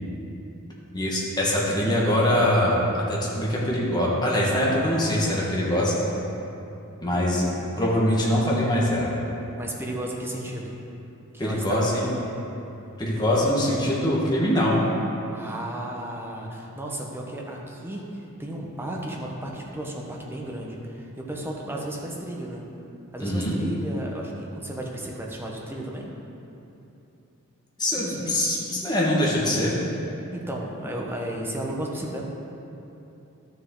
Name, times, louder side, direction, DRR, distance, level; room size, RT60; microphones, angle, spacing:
voice 1, 0.9-5.9 7.0-7.5 7.8-9.1 11.4-12.1 13.0-14.8 23.2-23.6 27.8-29.7, left 1 dB, 20° left, -5 dB, 1.5 m, -23 dB
voice 2, 9.6-10.7 11.3-12.0 15.3-22.6 23.1-26.1 28.0-28.4 30.3-32.2, right 1 dB, 10° right, -2 dB, 1.0 m, -34 dB
12.0 x 7.1 x 3.8 m, 2.9 s
head